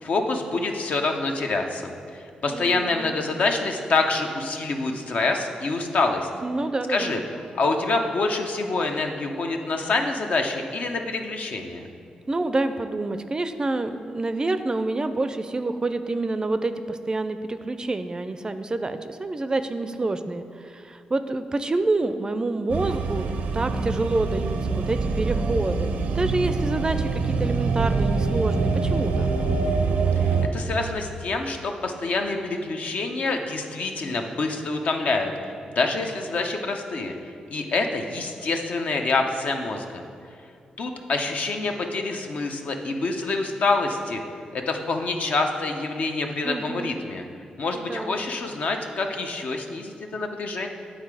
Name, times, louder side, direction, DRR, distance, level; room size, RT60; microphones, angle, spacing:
voice 1, 0.0-6.3 6.9-7.2 7.5-11.9 30.2-37.2 37.5-40.1 40.8-44.2 44.5-47.2 47.6-50.7, left 3 dB, 65° left, 4 dB, 0.7 m, -26 dB
voice 2, 2.5-3.2 6.4-7.2 12.3-29.3 46.4-47.0 47.7-48.2, right 2 dB, 30° right, 10 dB, 0.4 m, -27 dB
sound 1, 22.7-30.5, right 4 dB, 85° right, 0.5 m, -25 dB
9.4 x 3.7 x 4.8 m, 2.4 s
cardioid pair, 65°, 3 cm